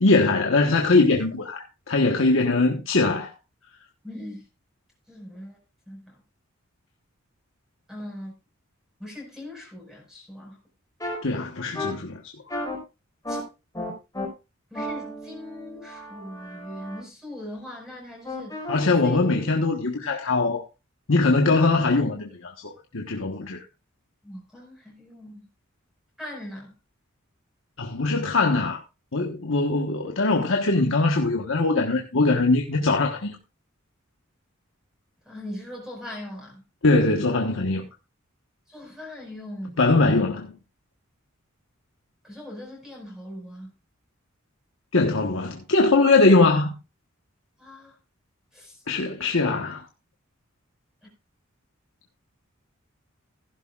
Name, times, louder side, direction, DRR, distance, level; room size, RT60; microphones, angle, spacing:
voice 1, 0.0-3.3 11.2-12.2 18.7-20.6 21.1-23.6 27.8-28.8 29.1-33.4 36.8-37.8 39.8-40.5 44.9-46.7 48.9-49.8, left 3 dB, 70° left, 1.4 m, -21 dB
voice 2, 4.0-4.4 5.1-5.6 5.9-6.2 7.9-8.3 9.0-10.6 13.3-13.4 14.7-18.6 19.0-19.2 24.2-25.5 26.2-26.7 35.3-36.6 38.7-39.9 42.2-43.7 47.6-48.0 48.5-48.8, left 1 dB, ahead, 5.3 m, -40 dB
sound 1, 11.0-11.2 11.7-11.9 12.5-12.8 13.2-13.4 13.7-14.3 14.7-17.0 18.2-18.8, left 1 dB, 15° left, 4.8 m, -33 dB
16.0 x 11.5 x 2.5 m
head